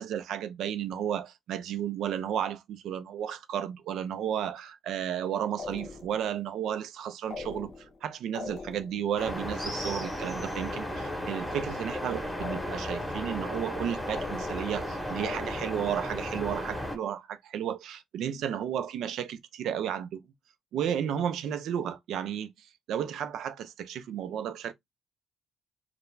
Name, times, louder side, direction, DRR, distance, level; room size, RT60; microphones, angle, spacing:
voice 1, 0.0-7.7 8.0-20.2 20.7-24.7, right 9 dB, 80° right, 0.4 m, -33 dB
sound 1, 5.6-6.3 7.3-8.0 8.3-9.1 12.4-13.1 14.1-14.9 15.2-15.9, left 4 dB, 60° left, 0.7 m, -41 dB
sound 2, 9.2-17.0, left 1 dB, 5° left, 0.9 m, -34 dB
2.3 x 2.0 x 3.0 m
cardioid pair, 90°, 0 cm